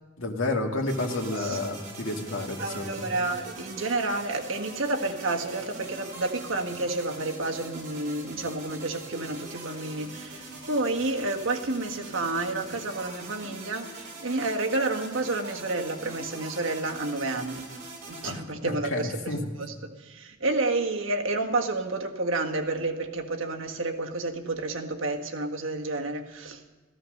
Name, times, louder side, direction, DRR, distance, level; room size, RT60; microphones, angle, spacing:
voice 1, 0.2-3.1 18.2-19.4, left 2 dB, 80° left, 2 dB, 2.1 m, -31 dB
sound 1, 0.9-18.3, right 2 dB, 40° right, 4.4 m, -43 dB
voice 2, 2.6-17.7 18.1-19.1 19.6-19.7 20.0-26.6, right 2 dB, 85° right, 2 dB, 1.6 m, -30 dB
15.0 x 14.5 x 6.5 m, 1.3 s
head